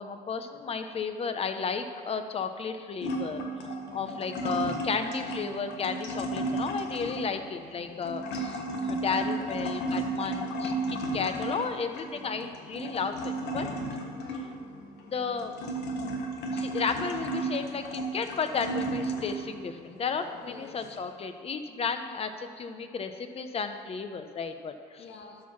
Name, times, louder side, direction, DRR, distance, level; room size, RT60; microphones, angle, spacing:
voice 1, 0.0-3.4 3.9-13.7 15.1-15.6 16.5-25.0, left 5 dB, 35° left, 8 dB, 0.7 m, -33 dB
sound 1, 3.0-19.6 20.1-21.1, right 2 dB, 85° left, 1.3 m, -34 dB
voice 2, 3.9-4.2 9.3-9.7 14.2-14.7 20.5-20.9 25.0-25.4, left 4 dB, 65° left, 2 dB, 1.5 m, -46 dB
12.0 x 4.7 x 5.8 m, 2.4 s
cardioid pair, 110°, 17 cm